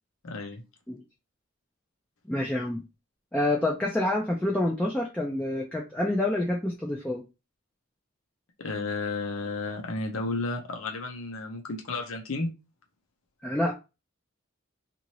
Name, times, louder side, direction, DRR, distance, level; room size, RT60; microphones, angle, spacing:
voice 1, 0.2-0.6 8.6-12.5, left 3 dB, 90° left, 3 dB, 0.7 m, -32 dB
voice 2, 2.3-2.8 3.3-7.2 13.4-13.7, left 1 dB, 5° left, -2 dB, 0.4 m, -27 dB
2.8 x 2.6 x 3.0 m, 0.27 s
head